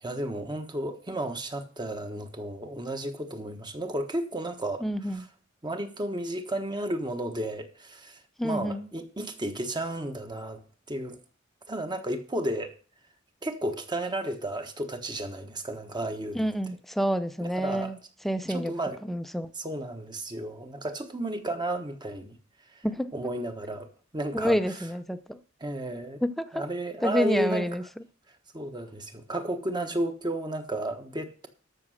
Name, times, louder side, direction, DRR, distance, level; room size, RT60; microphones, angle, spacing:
voice 1, 0.0-4.8 5.1-5.2 5.6-8.2 8.4-10.6 10.9-11.2 11.7-12.7 13.4-16.5 17.4-17.9 18.5-19.0 19.6-22.3 23.1-23.9 24.1-24.6 25.6-26.2 26.5-27.7 28.5-31.5, right 1 dB, 25° right, 1.3 m, -32 dB
voice 2, 4.8-5.2 8.4-8.9 16.3-18.0 18.2-18.7 19.0-19.5 22.8-23.1 24.3-25.4 26.2-26.6 27.0-27.8, equal, ahead, 0.6 m, -28 dB
13.5 x 6.2 x 6.4 m
head